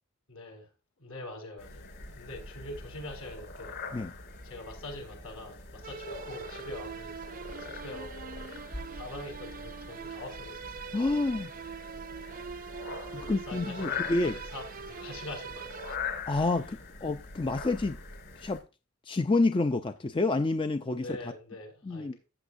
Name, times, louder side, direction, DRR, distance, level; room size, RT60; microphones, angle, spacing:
voice 1, 0.3-0.7 1.0-3.8 4.4-10.9 12.8-15.8 20.9-22.2, left 2 dB, 70° left, 5.3 m, -44 dB
sound 1, 1.6-18.6, left 4 dB, 50° left, 5.5 m, -42 dB
sound 2, 5.8-16.0, right 6 dB, 40° right, 0.4 m, -43 dB
voice 2, 10.9-11.5 13.1-14.3 16.3-18.0 18.4-18.6 19.1-21.2 21.9-22.2, left 2 dB, 25° left, 0.4 m, -28 dB
14.5 x 9.0 x 2.6 m
head